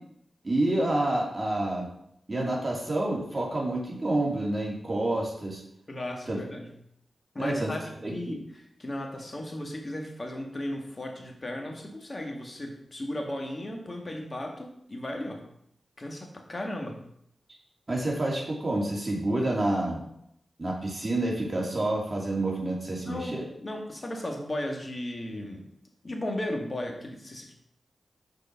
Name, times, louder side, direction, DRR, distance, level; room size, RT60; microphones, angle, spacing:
voice 1, 0.4-1.9 2.3-5.6 6.3-6.4 7.4-7.7 8.0-8.4 17.9-20.0 20.6-23.4, right 1 dB, 30° right, -2 dB, 2.7 m, -28 dB
voice 2, 5.9-6.7 7.3-15.4 16.0-17.0 23.0-25.6 26.0-27.5, left 1 dB, 35° left, 2 dB, 1.8 m, -35 dB
6.8 x 4.8 x 5.8 m, 0.73 s
cardioid pair, 60°, 0 cm